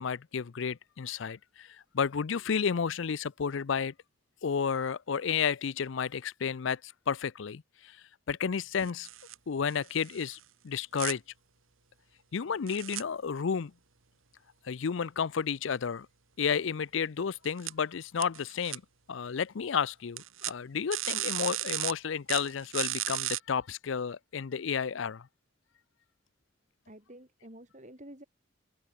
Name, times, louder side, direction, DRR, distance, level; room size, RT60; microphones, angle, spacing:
voice 1, 0.0-3.9 4.4-9.1 9.5-10.4 10.6-11.2 12.3-13.7 14.6-16.1 16.4-18.8 19.1-25.3, left 6 dB, 65° left, 0.5 m, -32 dB
sound 1, 8.8-9.3 9.7-10.4 11.0-11.1 12.7-13.0 17.4-17.7 18.2-18.8 20.2-20.5 20.9-21.9 22.3-23.4, right 15 dB, 80° right, 2.0 m, -34 dB
voice 2, 26.9-28.2, right 1 dB, 35° right, 5.3 m, -50 dB
open air
head